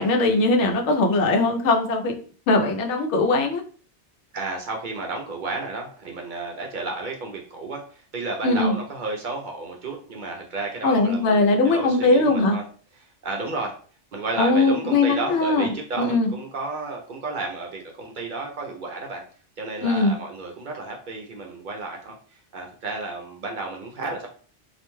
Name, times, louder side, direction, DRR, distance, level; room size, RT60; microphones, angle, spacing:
voice 1, 0.0-2.1 2.5-3.6 8.4-8.7 10.8-12.6 14.4-15.7 16.0-16.3 19.8-20.1, left 2 dB, 85° left, 3 dB, 0.9 m, -20 dB
voice 2, 4.3-7.8 8.1-12.6 13.0-13.7 14.1-19.2 19.6-22.1 22.5-24.3, right 3 dB, 60° right, 1 dB, 0.6 m, -32 dB
2.4 x 2.1 x 3.0 m, 0.42 s
omnidirectional pair, 1.1 m